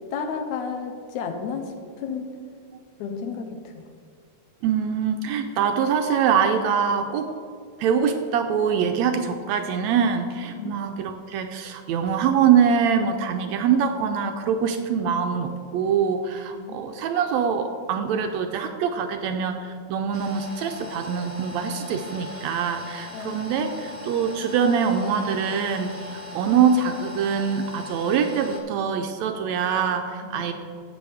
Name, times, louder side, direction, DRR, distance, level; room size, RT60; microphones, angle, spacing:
voice 1, 0.1-2.4 3.0-3.9 10.6-10.7 16.5-16.8 23.1-23.4 30.2-30.4, left 5 dB, 75° left, 6 dB, 2.1 m, -32 dB
voice 2, 4.6-7.3 7.8-30.5, right 7 dB, 80° right, 6 dB, 1.7 m, -24 dB
sound 1, 20.1-28.6, left 2 dB, 35° right, 1.0 m, -39 dB
13.0 x 8.4 x 3.4 m, 2.2 s
omnidirectional pair, 3.5 m